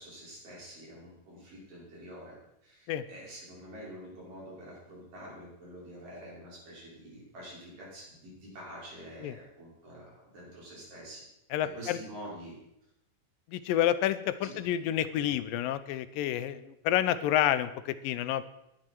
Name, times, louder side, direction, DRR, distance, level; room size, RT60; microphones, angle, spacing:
voice 1, 0.0-11.3 11.6-12.6 14.4-14.6, right 1 dB, 60° right, -5 dB, 7.5 m, -47 dB
voice 2, 11.5-12.0 13.5-18.4, left 11 dB, 80° left, 13 dB, 2.3 m, -29 dB
18.5 x 12.0 x 4.6 m, 0.84 s
omnidirectional pair, 4.2 m